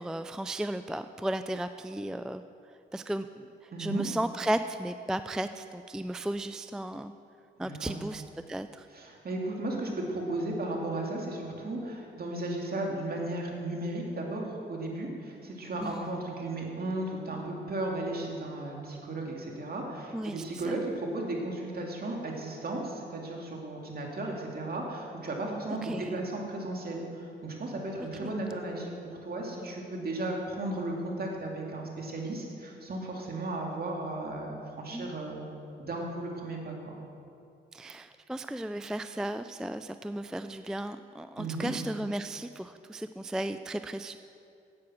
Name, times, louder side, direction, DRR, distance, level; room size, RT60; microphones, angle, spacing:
voice 1, 0.0-2.4 2.9-7.1 7.6-8.9 15.8-16.1 20.1-20.8 25.8-26.2 28.2-28.3 34.9-35.1 37.7-44.2, right 1 dB, 5° right, 11 dB, 0.3 m, -35 dB
voice 2, 3.7-4.0 7.6-8.0 8.9-35.5 35.8-37.0 41.4-41.7, right 2 dB, 50° right, 0 dB, 2.3 m, -35 dB
9.9 x 8.4 x 6.0 m, 2.6 s
cardioid pair, 65°, 20 cm